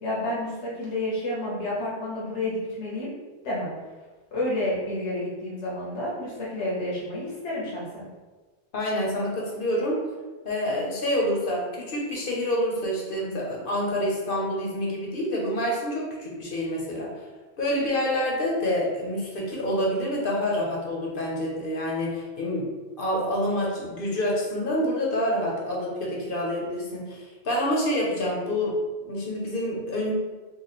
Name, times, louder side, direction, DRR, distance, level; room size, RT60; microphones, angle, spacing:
voice 1, 0.0-3.1 3.4-3.7 4.3-8.1, left 1 dB, 80° left, -6 dB, 1.2 m, -30 dB
voice 2, 8.7-10.0 10.4-17.1 17.6-22.7 23.0-28.7 29.1-30.1, left 1 dB, 55° left, -3 dB, 0.9 m, -27 dB
3.1 x 2.3 x 4.0 m, 1.3 s
omnidirectional pair, 1.2 m